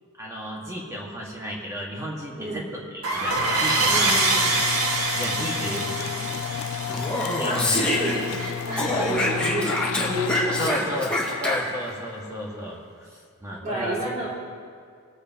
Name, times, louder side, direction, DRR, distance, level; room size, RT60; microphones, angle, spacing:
voice 1, 0.2-4.2 5.1-6.2 7.4-7.8 8.9-9.0 10.6-11.1 11.4-14.0, equal, 15° right, -4 dB, 1.7 m, -33 dB
sound 1, 3.0-8.3, right 2 dB, 75° right, 1.8 m, -25 dB
sound 2, 3.2-12.8, left 9 dB, 75° left, 0.3 m, -33 dB
voice 2, 3.9-4.5 5.6-5.7 7.4-11.0 13.6-14.3, right 1 dB, 40° right, -5 dB, 2.9 m, -30 dB
Speech, 6.8-8.5 8.8-11.9, left 1 dB, 5° left, 1.8 m, -26 dB
21.0 x 8.3 x 2.9 m, 2.1 s
head